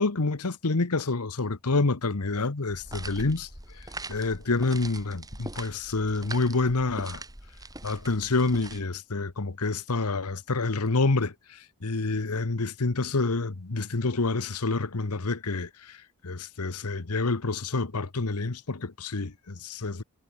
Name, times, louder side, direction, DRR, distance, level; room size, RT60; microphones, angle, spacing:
voice 1, 0.0-3.5 4.1-7.2 7.8-11.3 11.8-16.0 16.2-20.0, left 3 dB, 90° left, 1.2 m, -28 dB
sound 1, 2.7-8.8, right 2 dB, 15° right, 6.0 m, -42 dB
head